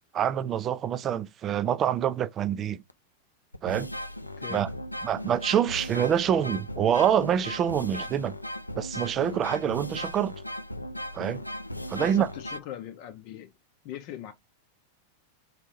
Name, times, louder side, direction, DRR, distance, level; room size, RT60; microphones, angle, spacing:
voice 1, 0.1-2.8 3.6-3.9 4.5-4.7 5.0-8.3 8.8-10.3 11.1-11.4 11.9-12.3, right 9 dB, 30° right, 0.3 m, -26 dB
sound 1, 2.9-3.0 3.5-12.6, equal, 85° left, 0.4 m, -37 dB
voice 2, 4.4-4.7 11.9-13.5 13.8-14.3, left 12 dB, 45° left, 0.6 m, -40 dB
3.8 x 2.7 x 4.1 m
figure-of-eight pair, 90°, 0 cm